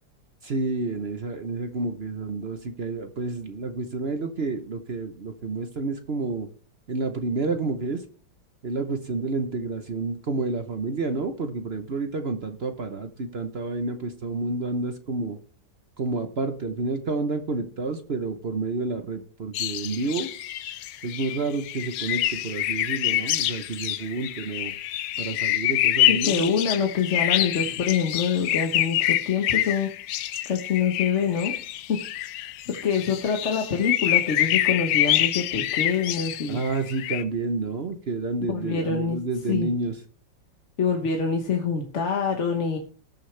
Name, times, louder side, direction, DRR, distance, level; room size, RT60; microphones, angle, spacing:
voice 1, 0.4-6.5 6.9-8.0 8.6-15.4 16.0-20.3 21.0-24.7 25.2-26.5 36.5-40.0, right 3 dB, 45° right, 7 dB, 0.9 m, -29 dB
sound 1, 19.5-37.2, left 13 dB, 75° left, 1.3 m, -26 dB
voice 2, 26.1-29.9 30.4-31.5 31.9-32.0 32.6-36.6 38.4-39.2 39.5-39.7 40.8-42.8, left 6 dB, 45° left, 3 dB, 1.3 m, -25 dB
19.0 x 6.5 x 3.3 m, 0.42 s
omnidirectional pair, 2.0 m